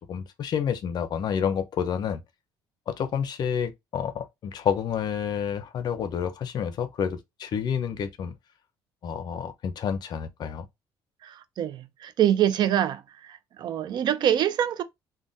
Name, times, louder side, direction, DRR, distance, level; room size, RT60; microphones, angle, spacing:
voice 1, 0.1-2.2 2.9-8.3 9.0-10.7, left 7 dB, 50° left, 0.5 m, -29 dB
voice 2, 11.2-14.8, right 10 dB, 55° right, 0.4 m, -25 dB
3.4 x 2.2 x 2.6 m
cardioid pair, 105°, 9 cm